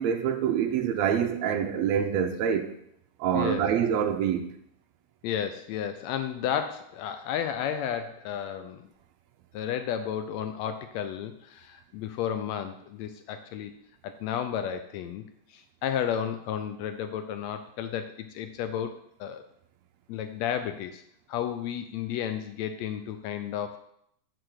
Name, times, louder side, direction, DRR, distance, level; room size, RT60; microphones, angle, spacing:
voice 1, 0.0-2.7 3.2-4.5, right 8 dB, 75° right, 1.8 m, -26 dB
voice 2, 3.3-3.7 5.2-8.9 9.5-13.7 14.0-15.2 15.5-18.9 19.2-19.4 20.1-21.0 21.3-23.8, left 9 dB, 80° left, 1.6 m, -32 dB
6.1 x 4.6 x 6.3 m
omnidirectional pair, 3.4 m